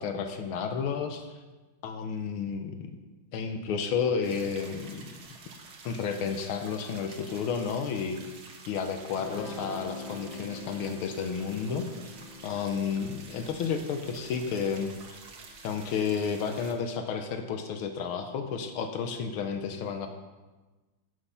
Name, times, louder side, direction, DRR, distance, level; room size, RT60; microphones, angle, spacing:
voice 1, 0.0-1.4 1.8-3.0 3.3-5.1 5.8-8.2 8.7-11.9 12.4-14.9 15.6-20.1, left 6 dB, 85° left, 6 dB, 1.7 m, -31 dB
sound 1, 4.2-16.7, right 4 dB, 55° right, 1.7 m, -49 dB
Guitar, 9.2-16.3, left 3 dB, 70° left, 2.1 m, -46 dB
14.0 x 6.3 x 5.6 m, 1.2 s
omnidirectional pair, 2.3 m